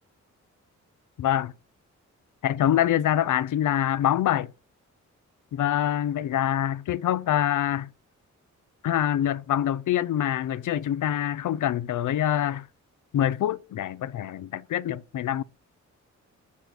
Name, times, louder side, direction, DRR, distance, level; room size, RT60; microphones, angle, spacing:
voice 1, 1.2-1.5 2.4-4.5 5.5-7.9 8.8-12.7 13.1-15.4, left 11 dB, 85° left, 0.6 m, -25 dB
7.1 x 6.3 x 6.0 m
wide cardioid pair, 175°, 30 cm